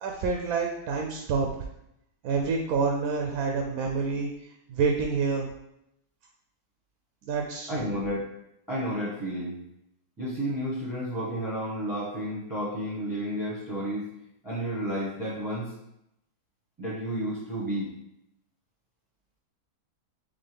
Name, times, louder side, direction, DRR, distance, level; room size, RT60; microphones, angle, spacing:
voice 1, 0.0-1.6 2.2-4.3 4.7-5.5 7.3-7.7, right 4 dB, 70° right, 1 dB, 1.0 m, -27 dB
voice 2, 7.7-8.3 8.7-9.6 10.2-14.1 14.4-15.7 16.8-17.9, equal, 15° right, -7 dB, 1.0 m, -31 dB
4.1 x 3.7 x 3.3 m, 0.82 s
omnidirectional pair, 1.7 m